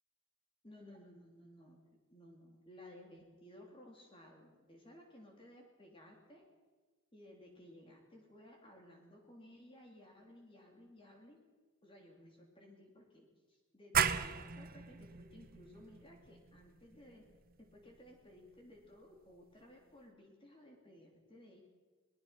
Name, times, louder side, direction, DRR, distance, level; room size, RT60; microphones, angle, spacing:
voice 1, 0.6-1.8 2.1-6.4 7.1-11.4 11.8-17.2 17.6-21.6, left 1 dB, 25° left, 1 dB, 3.2 m, -58 dB
sound 1, 13.9-19.3, right 7 dB, 40° right, 0.9 m, -38 dB
24.0 x 19.5 x 5.9 m, 1.3 s
head